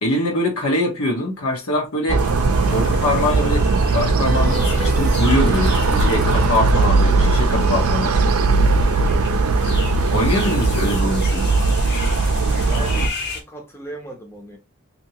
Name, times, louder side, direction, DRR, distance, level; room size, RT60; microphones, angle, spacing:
voice 1, 0.0-2.2 2.7-8.1 10.1-11.5, left 1 dB, 80° left, 1.0 m, -23 dB
sound 1, 2.1-13.1, right 3 dB, 80° right, 0.5 m, -18 dB
sound 2, 2.2-13.4, left 3 dB, 50° left, 0.8 m, -35 dB
sound 3, 4.3-7.4 7.7-7.8, right 1 dB, 35° right, 0.7 m, -32 dB
voice 2, 9.0-9.4 12.7-14.6, right 1 dB, 10° left, 0.6 m, -37 dB
2.8 x 2.7 x 2.9 m
head